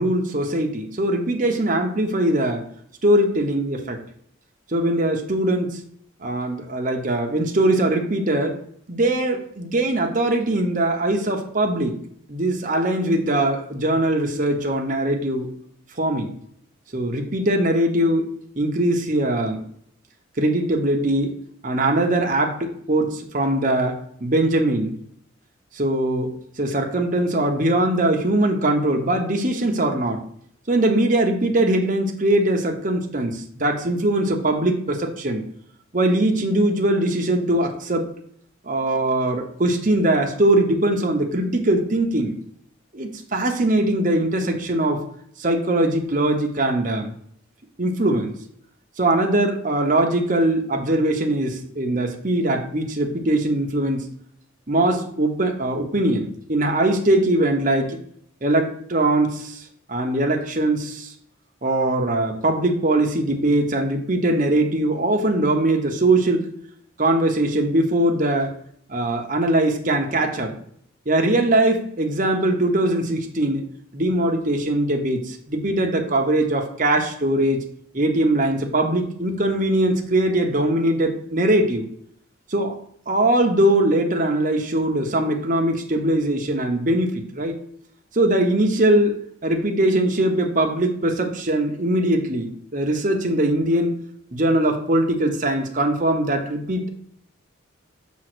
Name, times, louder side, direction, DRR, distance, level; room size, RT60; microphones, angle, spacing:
voice 1, 0.0-2.7 3.0-4.0 4.7-5.8 6.2-8.6 8.9-12.0 12.3-15.5 16.0-16.4 16.9-18.2 18.6-19.6 20.4-21.3 21.6-24.9 25.7-30.2 30.7-35.4 35.9-38.1 38.6-42.3 42.9-45.0 45.4-47.1 47.8-48.3 49.0-54.1 54.7-58.0 58.4-61.1 61.6-66.5 67.0-68.5 68.9-70.5 71.1-73.7 73.9-77.6 77.9-81.9 82.5-82.8 83.1-87.6 88.1-93.9 94.3-96.9, right 1 dB, 40° right, 2 dB, 1.0 m, -21 dB
6.2 x 3.7 x 6.1 m, 0.65 s
head